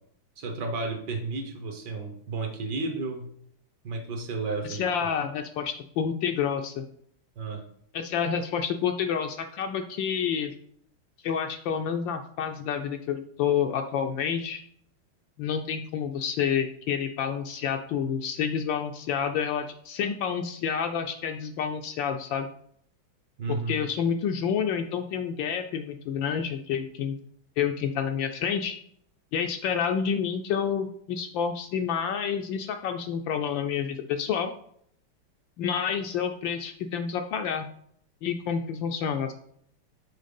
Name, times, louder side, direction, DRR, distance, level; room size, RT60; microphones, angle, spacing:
voice 1, 0.4-3.3 3.8-5.1 7.4-7.6 23.4-23.8, right 3 dB, 60° right, 4 dB, 1.4 m, -32 dB
voice 2, 4.6-6.8 7.9-10.5 11.2-14.6 15.4-22.5 23.5-27.1 27.6-28.7 29.3-34.5 35.6-37.7 38.2-39.3, left 7 dB, 75° left, 6 dB, 1.1 m, -29 dB
6.4 x 4.4 x 5.2 m, 0.67 s
omnidirectional pair, 2.3 m